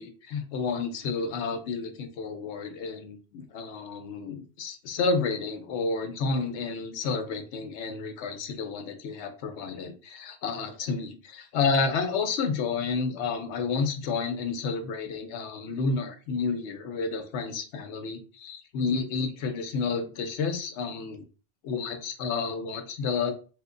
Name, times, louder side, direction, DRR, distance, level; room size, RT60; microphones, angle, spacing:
voice 1, 0.0-21.2 21.6-23.3, left 4 dB, 85° left, 7 dB, 0.9 m, -30 dB
3.1 x 2.1 x 3.6 m, 0.35 s
omnidirectional pair, 1.1 m